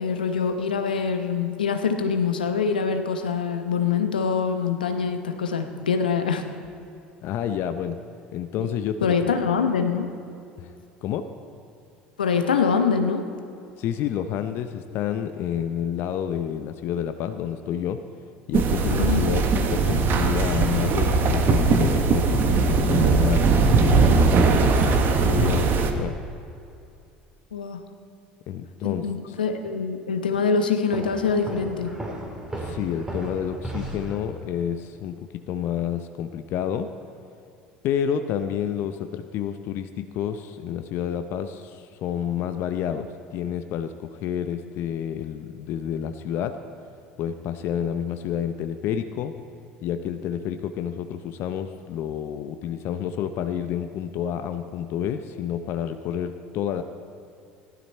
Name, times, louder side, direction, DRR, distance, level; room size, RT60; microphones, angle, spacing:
voice 1, 0.0-6.4 8.6-8.7 9.0-10.1 12.2-13.2 18.9-19.2 27.5-27.8 28.8-31.9, left 5 dB, 85° left, 7 dB, 0.9 m, -24 dB
voice 2, 7.2-8.0 8.3-9.4 10.6-10.7 11.0-11.3 13.8-18.0 18.5-26.2 28.5-29.3 32.6-36.9 37.8-46.6 47.2-49.3 49.8-56.8, left 9 dB, 55° left, 9 dB, 0.6 m, -29 dB
sound 1, 18.5-25.9, right 4 dB, 45° right, 1.2 m, -20 dB
sound 2, 30.9-34.6, right 1 dB, 15° right, 2.9 m, -35 dB
15.0 x 12.0 x 4.4 m, 2.6 s
hypercardioid pair, 70°, 5 cm